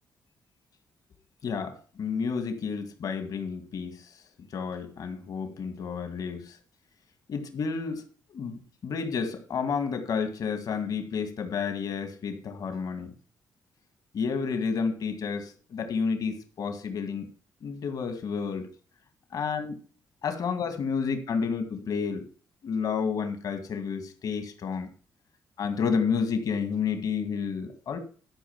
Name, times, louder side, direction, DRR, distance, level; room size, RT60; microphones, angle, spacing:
voice 1, 1.4-4.1 4.5-6.6 7.3-8.0 8.3-13.1 14.1-17.3 17.6-18.7 19.3-19.7 20.2-22.3 22.6-24.9 25.6-28.0, left 5 dB, 70° left, 2.0 m, -30 dB
13.0 x 5.1 x 7.2 m
cardioid pair, 75°, 7 cm